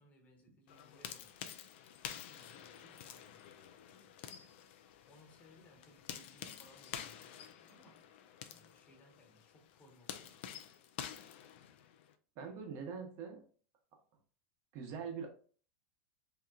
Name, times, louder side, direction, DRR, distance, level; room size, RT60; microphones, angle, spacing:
voice 1, 0.0-1.6 2.1-4.6 5.1-8.1 8.5-10.9, left 1 dB, 20° left, 1.1 m, -65 dB
sound 1, 0.7-12.1, left 9 dB, 65° left, 0.4 m, -49 dB
voice 2, 12.4-13.4 14.7-15.3, right 6 dB, 45° right, 1.0 m, -43 dB
3.6 x 2.9 x 2.3 m
supercardioid pair, 135°, 7 cm